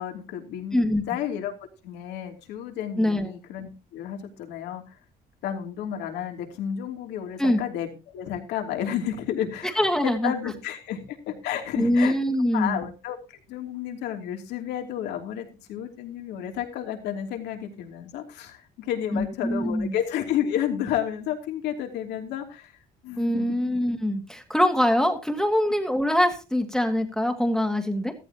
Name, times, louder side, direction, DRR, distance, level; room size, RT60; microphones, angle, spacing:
voice 1, 0.0-1.6 1.8-5.0 5.4-7.9 8.1-12.2 12.5-22.7 23.0-23.5, left 10 dB, 85° left, 4 dB, 2.9 m, -31 dB
voice 2, 0.7-1.0 3.0-3.3 7.4-7.6 9.8-10.3 11.8-12.9 19.1-20.0 23.2-28.1, left 1 dB, 5° left, 5 dB, 1.8 m, -23 dB
14.5 x 14.0 x 2.9 m, 0.30 s
cardioid pair, 110°, 17 cm